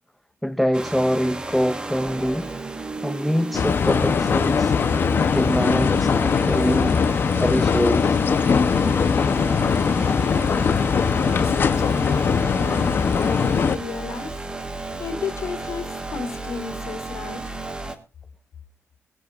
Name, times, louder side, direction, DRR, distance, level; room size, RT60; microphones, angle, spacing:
voice 1, 0.4-2.5 3.0-4.8 5.3-7.0 7.4-8.2, equal, ahead, 0.5 m, -24 dB
sound 1, 0.7-18.0, right 2 dB, 15° right, 1.4 m, -33 dB
sound 2, 3.5-13.8, left 6 dB, 45° left, 0.8 m, -21 dB
voice 2, 10.3-14.4 15.0-17.6, left 6 dB, 70° left, 3.0 m, -33 dB
20.5 x 11.5 x 2.5 m
wide cardioid pair, 165°, 5 cm